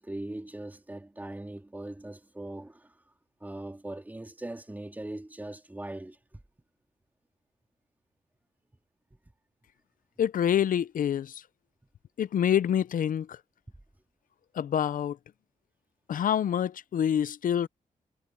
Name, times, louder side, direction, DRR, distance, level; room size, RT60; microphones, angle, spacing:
voice 1, 0.0-2.9 3.4-6.2, right 1 dB, 10° right, 2.8 m, -40 dB
voice 2, 10.2-11.4 12.2-13.4 14.5-15.2 16.1-17.7, left 9 dB, 65° left, 0.6 m, -26 dB
cardioid pair, 95°, 15 cm